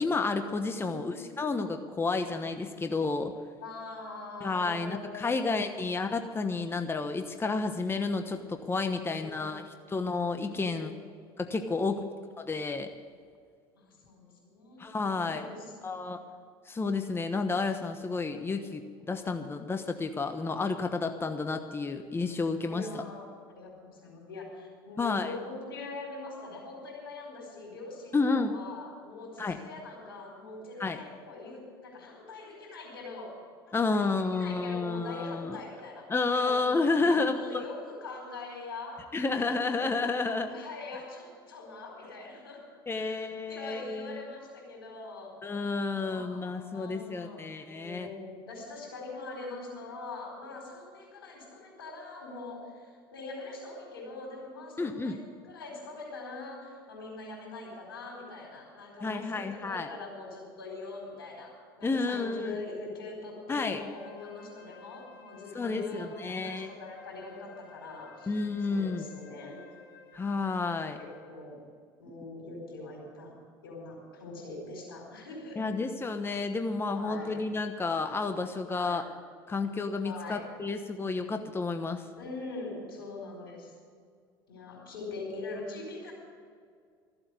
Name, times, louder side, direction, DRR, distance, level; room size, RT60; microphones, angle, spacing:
voice 1, 0.0-3.3 4.4-10.9 11.4-12.0 12.4-12.9 14.8-15.4 15.8-16.2 16.7-23.0 25.0-25.3 28.1-28.6 29.4-29.6 30.8-31.0 33.7-35.6 36.1-37.6 39.1-40.5 42.9-44.2 45.4-48.1 54.8-55.2 59.0-59.9 61.8-62.6 63.5-63.8 65.5-66.7 68.3-69.0 70.1-71.0 75.6-79.0 79.5-82.1, left 3 dB, 20° left, 7 dB, 1.1 m, -31 dB
voice 2, 0.8-1.2 3.6-5.9 9.0-9.8 10.5-11.1 11.7-12.1 13.7-16.0 22.7-33.4 33.7-36.5 37.0-39.8 40.2-42.6 42.9-45.4 45.9-68.3 68.7-69.7 70.9-71.6 72.0-73.3 73.6-75.6 76.9-77.3 78.7-79.0 80.0-80.5 82.1-83.7 84.5-86.1, left 3 dB, 90° left, -1 dB, 4.4 m, -43 dB
Wind instrument woodwind instrument, 63.7-71.4, left 5 dB, 65° left, 3.2 m, -55 dB
14.0 x 8.0 x 9.6 m, 2.1 s
hypercardioid pair, 75°, 12 cm